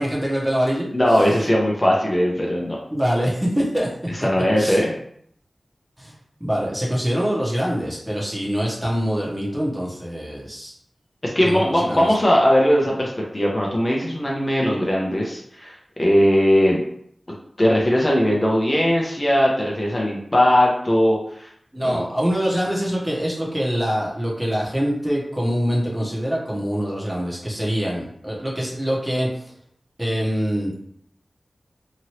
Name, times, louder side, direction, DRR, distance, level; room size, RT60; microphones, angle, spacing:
voice 1, 0.0-0.9 2.9-3.9 4.6-4.9 6.0-10.7 11.4-12.1 21.7-29.5 30.0-30.7, equal, 15° right, -4 dB, 1.0 m, -24 dB
voice 2, 0.9-2.8 4.2-4.9 11.2-16.8 17.6-21.5 21.8-22.1, equal, 30° left, -3 dB, 0.7 m, -19 dB
2.9 x 2.6 x 3.0 m, 0.67 s
wide cardioid pair, 60°, 0 cm